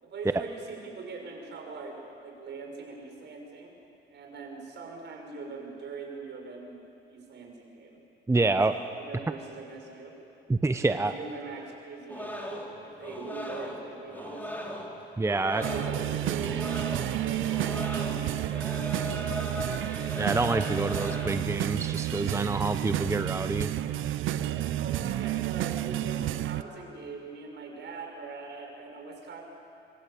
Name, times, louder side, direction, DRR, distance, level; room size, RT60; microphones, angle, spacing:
voice 1, 0.0-3.7 4.1-6.8 7.1-8.0 8.3-8.6 8.9-10.1 10.7-14.7 15.3-19.5 24.1-29.4, right 4 dB, 65° right, 1 dB, 6.2 m, -42 dB
voice 2, 8.3-8.7 10.5-11.1 15.2-15.6 20.2-23.7, right 3 dB, 15° right, 9 dB, 0.8 m, -27 dB
sound 1, 12.1-21.5, left 1 dB, 10° left, 4.2 m, -38 dB
sound 2, 15.6-26.6, right 13 dB, 80° right, 0.7 m, -31 dB
25.0 x 24.0 x 8.5 m, 2.7 s
cardioid pair, 90°, 20 cm